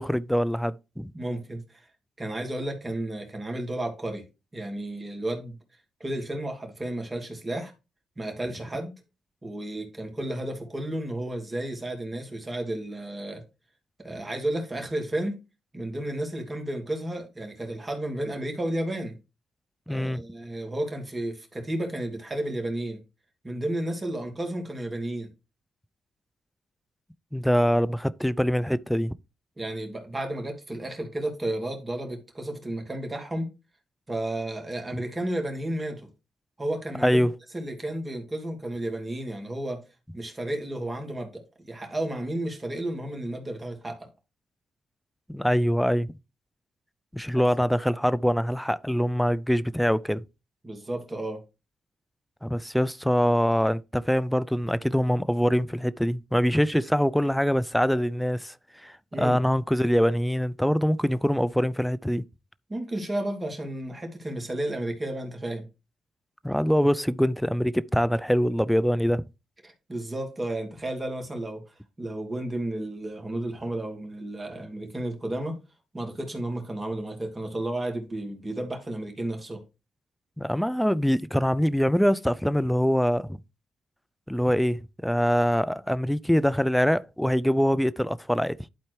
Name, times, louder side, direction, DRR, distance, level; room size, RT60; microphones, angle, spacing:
voice 1, 0.0-1.1 19.9-20.2 27.3-29.1 37.0-37.3 45.3-46.1 47.1-50.2 52.4-58.5 58.8-62.2 66.4-69.2 80.4-83.4 84.3-88.6, equal, ahead, 0.5 m, -24 dB
voice 2, 1.1-1.9 2.2-4.2 4.5-5.6 6.0-7.7 8.2-8.9 9.4-13.4 14.0-15.4 15.7-19.1 19.9-23.0 23.4-25.3 27.7-27.8 29.6-33.5 34.1-36.1 36.6-37.2 37.5-39.8 40.1-44.1 47.3-47.4 50.6-51.4 59.1-59.4 62.7-65.6 69.6-71.6 72.0-75.6 75.9-79.6, right 1 dB, 25° right, 2.7 m, -32 dB
11.5 x 4.3 x 3.2 m
hypercardioid pair, 45°, 0 cm